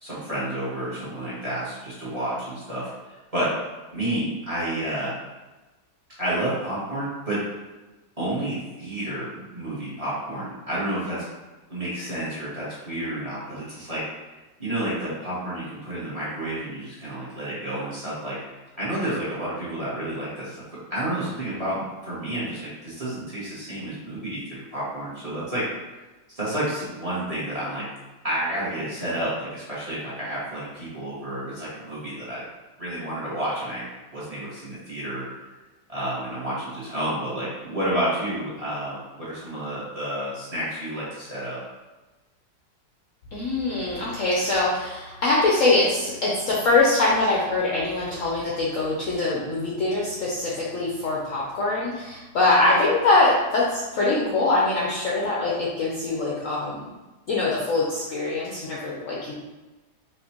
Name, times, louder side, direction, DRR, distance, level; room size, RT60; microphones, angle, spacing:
voice 1, 0.0-2.9 3.3-3.5 3.9-5.1 6.2-7.4 8.2-11.2 11.7-14.0 14.6-18.4 18.7-20.6 20.9-25.6 26.3-27.8 28.2-32.4 32.8-33.9 34.1-35.2 35.9-41.6, right 1 dB, 20° right, -9 dB, 1.3 m, -30 dB
voice 2, 43.3-56.9 57.3-59.3, left 2 dB, 60° left, -5 dB, 0.9 m, -23 dB
4.5 x 2.9 x 2.8 m, 1.1 s
omnidirectional pair, 1.9 m